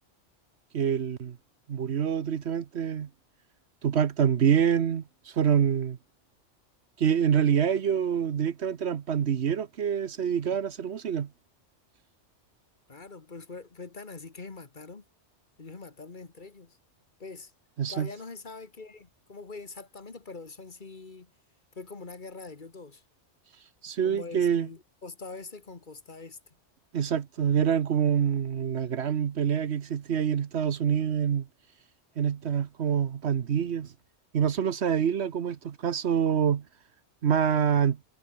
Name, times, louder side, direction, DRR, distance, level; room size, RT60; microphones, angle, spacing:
voice 1, 0.7-1.4 1.7-3.1 3.8-6.0 7.0-11.3 17.8-18.1 23.8-24.7 26.9-31.5 32.2-33.9 34.3-36.6 37.2-38.0, right 8 dB, 65° right, 1.2 m, -26 dB
voice 2, 12.9-15.0 15.6-16.8 17.2-17.5 17.9-21.3 21.8-23.0 24.0-26.4, left 3 dB, 45° left, 1.7 m, -43 dB
omnidirectional pair, 1.2 m